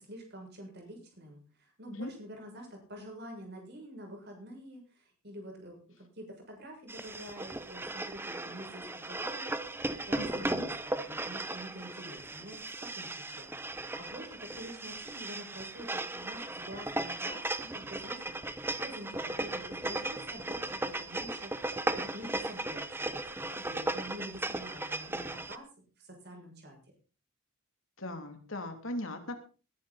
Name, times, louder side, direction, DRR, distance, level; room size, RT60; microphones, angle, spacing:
voice 1, 0.0-26.8, equal, 50° right, 2 dB, 7.0 m, -47 dB
sound 1, 6.9-25.6, right 2 dB, 10° right, 0.8 m, -37 dB
voice 2, 10.2-10.7 28.0-29.4, left 1 dB, 65° left, 6 dB, 3.0 m, -39 dB
20.5 x 11.0 x 4.2 m, 0.36 s
head